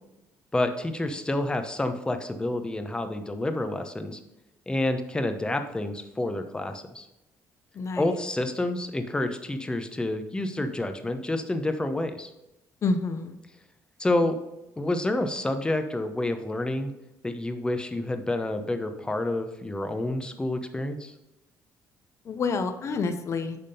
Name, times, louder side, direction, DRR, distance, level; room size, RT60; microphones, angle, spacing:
voice 1, 0.5-4.2 4.7-7.1 8.0-12.3 14.0-14.4 14.8-16.9 17.2-21.1, left 1 dB, 15° left, 7 dB, 0.8 m, -28 dB
voice 2, 7.8-8.2 12.8-13.3 22.3-23.6, left 4 dB, 45° left, 8 dB, 0.7 m, -28 dB
10.0 x 3.6 x 5.3 m, 0.95 s
cardioid pair, 105°, 7 cm